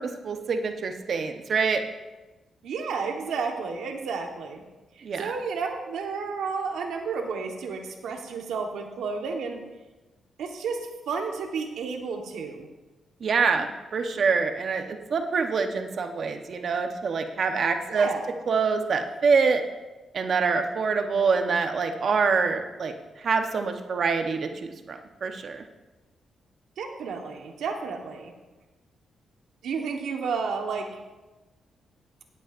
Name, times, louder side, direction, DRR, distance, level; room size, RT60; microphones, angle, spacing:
voice 1, 0.0-1.8 5.0-5.3 13.2-18.1 18.5-19.6 20.1-25.6, right 5 dB, 55° right, 6 dB, 1.0 m, -25 dB
voice 2, 2.6-4.6 5.0-9.6 10.4-12.7 17.9-18.3 26.8-28.3 29.6-31.0, right 5 dB, 85° right, 3 dB, 1.3 m, -32 dB
16.5 x 8.3 x 2.6 m, 1.1 s
cardioid pair, 95°, 0 cm